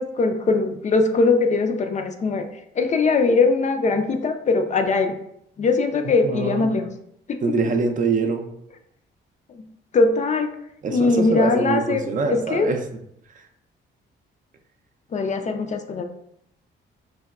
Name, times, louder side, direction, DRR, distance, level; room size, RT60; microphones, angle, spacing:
voice 1, 0.0-2.4 2.8-5.1 5.6-6.9 7.3-7.4 9.9-10.5 10.9-12.0 12.3-12.7 15.1-16.0, left 3 dB, 35° left, 5 dB, 0.4 m, -21 dB
voice 2, 6.2-6.7 7.4-8.5 10.8-12.8 13.3-13.4, right 4 dB, 40° right, 5 dB, 0.5 m, -24 dB
4.6 x 2.1 x 2.3 m, 0.74 s
cardioid pair, 90°, 20 cm